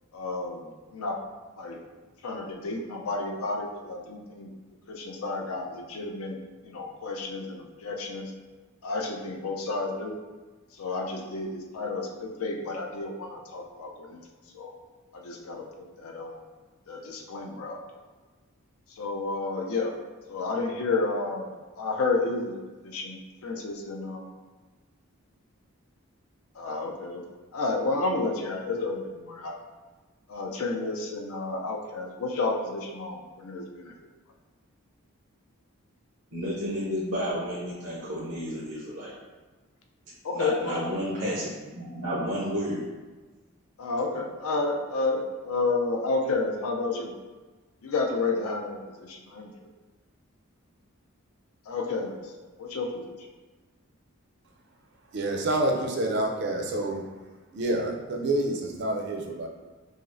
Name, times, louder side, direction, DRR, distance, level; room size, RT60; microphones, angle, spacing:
voice 1, 0.1-1.2 1.6-1.8 2.2-4.5 4.9-6.4 6.6-8.3 8.8-10.1 10.8-14.2 14.5-14.7 15.1-15.6 16.0-16.4 16.9-17.8 19.0-19.9 20.3-21.5 21.8-22.5 22.8-24.3 26.6-27.2 27.5-29.6 30.3-33.9 40.2-40.8 43.8-47.1 47.8-49.5 51.7-52.2 52.6-53.0, left 3 dB, 75° left, 2 dB, 0.5 m, -31 dB
voice 2, 36.3-39.1 40.3-42.8, equal, 90° right, -8 dB, 0.8 m, -31 dB
voice 3, 55.1-57.1 57.5-59.5, right 1 dB, 50° right, 1 dB, 0.4 m, -28 dB
5.0 x 2.0 x 2.5 m, 1.3 s
head